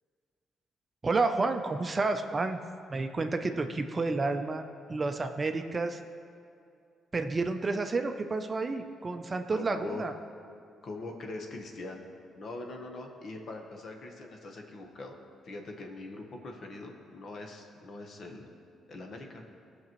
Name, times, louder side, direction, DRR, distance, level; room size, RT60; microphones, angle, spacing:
voice 1, 1.0-2.6 2.9-6.0 7.1-10.1, right 3 dB, 30° right, 7 dB, 0.5 m, -30 dB
voice 2, 9.5-10.0 10.8-12.0 12.3-15.2 15.4-18.5 18.9-19.5, left 2 dB, 55° left, 2 dB, 1.1 m, -42 dB
16.0 x 6.0 x 3.1 m, 2.4 s
cardioid pair, 90°, 0 cm